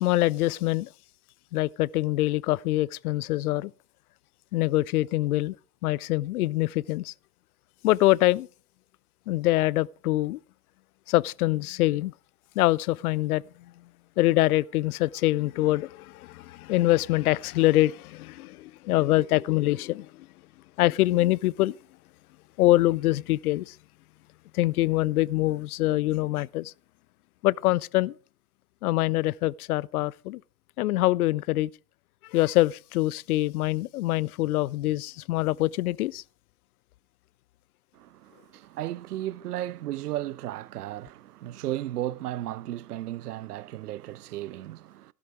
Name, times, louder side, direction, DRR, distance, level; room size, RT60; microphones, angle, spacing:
voice 1, 0.0-0.9 1.5-3.7 4.5-5.5 5.8-7.1 7.8-8.5 9.3-10.4 11.1-12.1 12.6-13.4 14.2-20.3 20.8-21.8 22.6-23.8 24.5-26.7 27.4-28.1 28.8-30.4 30.8-31.7 32.3-36.2, left 17 dB, 70° left, 0.5 m, -24 dB
voice 2, 37.9-45.1, right 14 dB, 75° right, 0.6 m, -35 dB
14.0 x 13.0 x 3.6 m
figure-of-eight pair, 85°, 47 cm